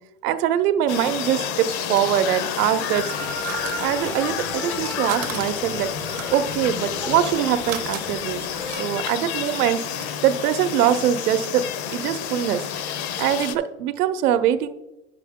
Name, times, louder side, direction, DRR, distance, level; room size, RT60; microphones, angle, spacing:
voice 1, 0.2-3.0 3.8-8.5 8.8-9.8 10.2-11.6 11.9-12.6 13.2-14.7, right 10 dB, 90° right, 11 dB, 0.8 m, -23 dB
sound 1, 0.9-13.5, left 9 dB, 50° left, 0.6 m, -30 dB
sound 2, 1.1-4.5 4.7-10.2, right 13 dB, 40° right, 0.6 m, -40 dB
sound 3, 2.8-8.7, left 1 dB, 10° left, 0.3 m, -35 dB
9.2 x 6.3 x 3.6 m, 0.95 s
supercardioid pair, 160°, 44 cm